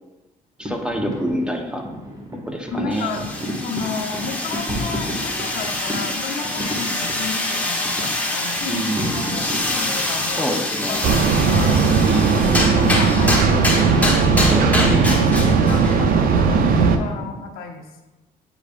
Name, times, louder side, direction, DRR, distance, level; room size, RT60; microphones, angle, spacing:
voice 1, 0.6-1.8 2.5-3.1 8.7-9.1 10.4-11.0 12.0-12.7 14.5-15.2, right 1 dB, 5° right, 3 dB, 0.9 m, -26 dB
sound 1, 0.6-17.3, equal, 25° right, 1.7 m, -33 dB
voice 2, 2.7-3.2 3.5-8.8 9.1-10.5 10.8-11.8 12.6-14.3 15.2-18.0, left 5 dB, 80° left, 4 dB, 0.8 m, -32 dB
sound 2, 2.9-16.0, left 1 dB, 10° left, 1.2 m, -25 dB
sound 3, 11.0-17.0, right 5 dB, 70° right, 0.5 m, -17 dB
8.3 x 5.0 x 2.5 m, 1.1 s
cardioid pair, 85°, 15 cm